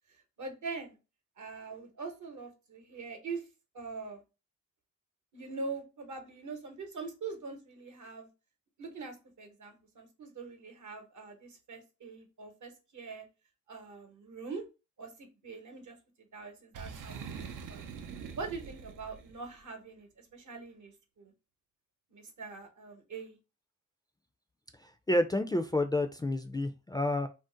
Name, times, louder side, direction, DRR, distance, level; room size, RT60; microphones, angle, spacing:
voice 1, 0.4-1.0 1.4-3.4 3.7-4.2 5.3-8.3 8.8-13.2 13.7-14.6 15.0-16.0 16.3-17.4 17.7-17.9 18.4-21.3 22.1-23.4, right 4 dB, 70° right, 5 dB, 0.9 m, -43 dB
Boom, 16.7-19.5, right 6 dB, 85° right, 0.5 m, -44 dB
voice 2, 24.8-27.3, left 1 dB, 15° left, 6 dB, 0.3 m, -30 dB
2.5 x 2.0 x 3.7 m, 0.30 s
cardioid pair, 60°, 31 cm